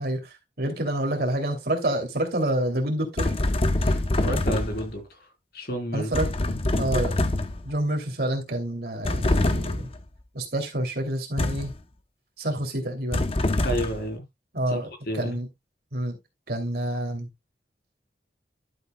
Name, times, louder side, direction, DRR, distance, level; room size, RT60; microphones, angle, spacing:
voice 1, 0.0-3.3 5.9-6.3 6.8-7.2 7.6-9.9 10.3-11.7 12.4-13.2 14.5-15.5 15.9-16.2 16.5-17.3, right 1 dB, 60° right, 2.7 m, -28 dB
sound 1, 3.2-4.9 6.1-7.7 9.0-10.0 11.4-11.8 13.1-14.1, left 2 dB, 30° left, 0.7 m, -25 dB
voice 2, 3.8-5.0 5.5-6.1 6.4-6.6 13.6-14.2 14.7-15.4, right 1 dB, 55° left, 3.4 m, -31 dB
11.5 x 7.8 x 2.2 m
head